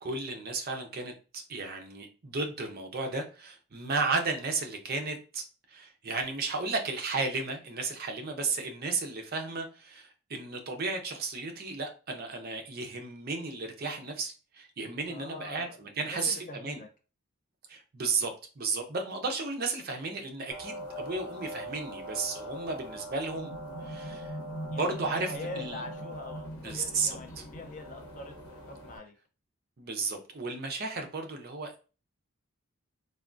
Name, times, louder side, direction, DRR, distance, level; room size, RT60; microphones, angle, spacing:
voice 1, 0.0-16.8 17.7-23.5 23.8-24.3 24.7-25.8 26.6-27.4 29.8-31.9, right 3 dB, 45° right, 0.5 m, -34 dB
voice 2, 15.1-15.8 16.0-16.9 24.7-29.1, left 3 dB, 35° left, 0.5 m, -44 dB
sound 1, 20.5-29.0, right 1 dB, 85° left, 0.9 m, -41 dB
3.5 x 2.2 x 2.4 m
head